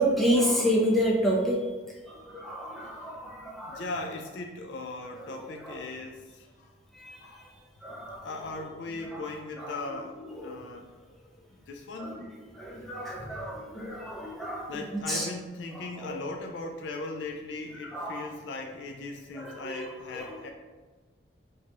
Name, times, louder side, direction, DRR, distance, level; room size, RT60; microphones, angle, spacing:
voice 1, 0.0-1.7 2.1-3.9 5.3-5.8 6.9-7.4 7.8-8.5 9.0-9.3 9.6-10.6 12.0-12.2 12.5-15.3 15.7-16.2 17.8-18.3 19.3-20.4, equal, ahead, -3 dB, 0.6 m, -30 dB
voice 2, 3.7-6.7 7.2-7.4 8.2-11.3 11.7-12.2 14.7-20.5, left 2 dB, 75° left, 3 dB, 0.4 m, -38 dB
4.5 x 2.4 x 2.9 m, 1.3 s
head